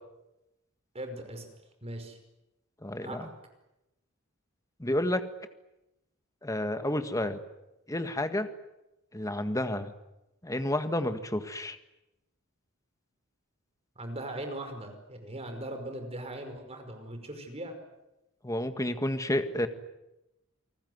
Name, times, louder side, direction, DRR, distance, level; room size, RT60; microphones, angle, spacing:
voice 1, 0.9-1.5 1.8-2.2 3.0-3.3 14.0-17.8, right 1 dB, 30° right, 6 dB, 5.3 m, -39 dB
voice 2, 2.8-3.3 4.8-5.2 6.4-7.4 7.9-8.5 9.1-9.9 10.4-11.8 18.4-19.7, left 1 dB, 15° left, 9 dB, 1.7 m, -30 dB
29.5 x 20.0 x 9.5 m, 0.94 s
head